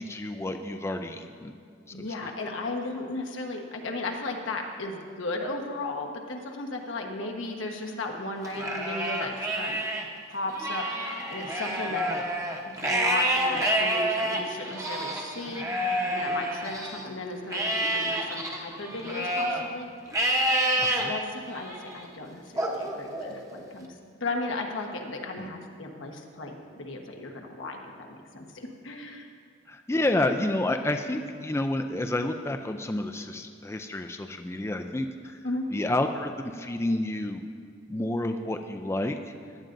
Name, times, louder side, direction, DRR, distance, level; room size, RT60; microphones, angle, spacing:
voice 1, 0.0-1.5 1.9-2.3 20.8-21.1 25.4-25.5 29.7-35.5 35.7-37.4 37.9-39.2, left 1 dB, 15° left, 6 dB, 0.3 m, -30 dB
voice 2, 1.9-9.8 10.3-12.1 12.6-15.7 16.0-19.9 20.9-23.9 24.1-29.3 35.4-35.7, left 2 dB, 90° left, 2 dB, 1.2 m, -35 dB
Livestock farm animals working animals, 8.4-10.0 10.5-17.0 17.5-19.6 20.1-21.0 21.6-22.0 22.6-23.6, right 1 dB, 15° right, 0.9 m, -28 dB
16.5 x 12.0 x 2.6 m, 2.2 s
head